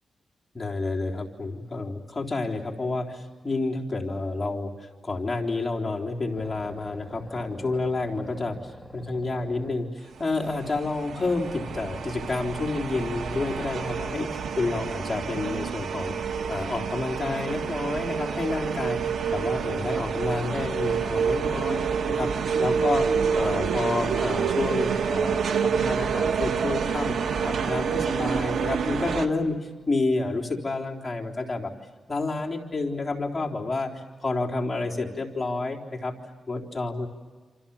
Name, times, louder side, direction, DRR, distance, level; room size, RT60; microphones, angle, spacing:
voice 1, 0.5-22.3 22.6-27.2 27.4-31.7 32.1-36.1 36.5-37.1, left 3 dB, 20° left, -2 dB, 3.8 m, -29 dB
sound 1, 6.3-10.1 11.1-16.1 17.5-22.0, equal, 10° right, 1.8 m, -45 dB
sound 2, 10.3-29.3, right 6 dB, 85° right, 1.6 m, -28 dB
28.5 x 28.0 x 7.2 m, 1.4 s
cardioid pair, 95°, 0 cm